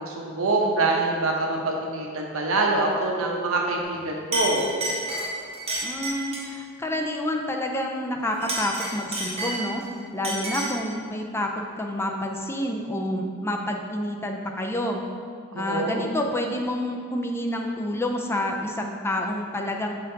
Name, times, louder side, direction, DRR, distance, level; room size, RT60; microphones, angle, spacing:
voice 1, 0.0-4.7 15.5-16.0, right 2 dB, 90° right, 0 dB, 0.9 m, -25 dB
Chink clink, 3.8-4.0 4.3-6.5 8.3-9.9 10.2-10.8, right 1 dB, 30° right, 1.2 m, -30 dB
voice 2, 5.8-9.8 10.1-15.0 15.6-19.9, left 1 dB, 10° left, 2 dB, 0.4 m, -28 dB
6.6 x 4.2 x 3.9 m, 2.2 s
head